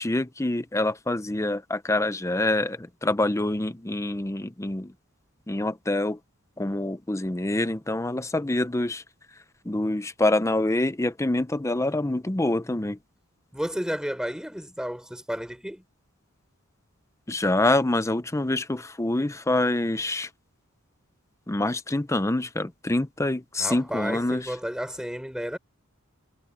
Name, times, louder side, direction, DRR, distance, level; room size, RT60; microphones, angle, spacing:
voice 1, 0.0-4.9 5.5-6.2 6.6-9.0 9.6-13.0 17.3-20.3 21.5-24.5, left 2 dB, 15° left, 0.7 m, -26 dB
voice 2, 13.5-15.8 23.6-25.6, equal, 5° right, 4.5 m, -32 dB
head